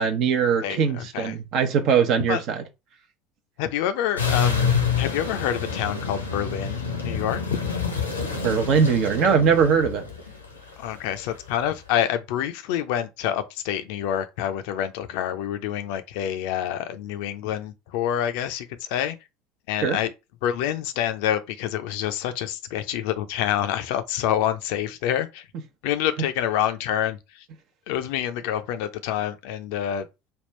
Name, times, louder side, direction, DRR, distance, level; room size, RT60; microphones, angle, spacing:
voice 1, 0.0-2.6 8.4-10.0 19.8-20.0, right 6 dB, 50° right, 0.8 m, -21 dB
voice 2, 0.6-1.4 2.3-2.4 3.6-7.4 10.8-19.2 19.7-20.1 20.4-25.5 25.8-27.5 27.9-30.1, left 10 dB, 60° left, 0.5 m, -27 dB
sound 1, 4.2-11.5, left 6 dB, 85° left, 0.8 m, -27 dB
3.6 x 2.3 x 4.3 m
figure-of-eight pair, 70°, 0 cm